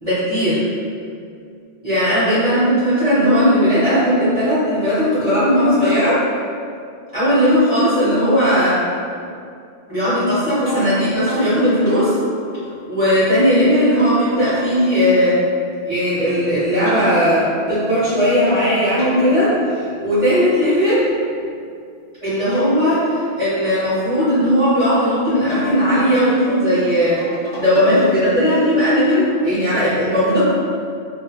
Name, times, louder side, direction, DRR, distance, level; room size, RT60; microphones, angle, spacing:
voice 1, 0.0-0.6 1.8-6.2 7.1-8.8 9.9-12.2 12.9-15.4 15.8-21.1 22.2-27.2 27.6-30.4, equal, 35° right, -14 dB, 0.7 m, -17 dB
sound 1, 10.6-10.9 11.3-11.5 11.9-14.1 14.4-16.4 16.9-18.6 19.0-21.9 22.3-25.0 25.5-28.5, left 3 dB, 80° left, 1.1 m, -36 dB
2.4 x 2.1 x 2.8 m, 2.3 s
omnidirectional pair, 1.2 m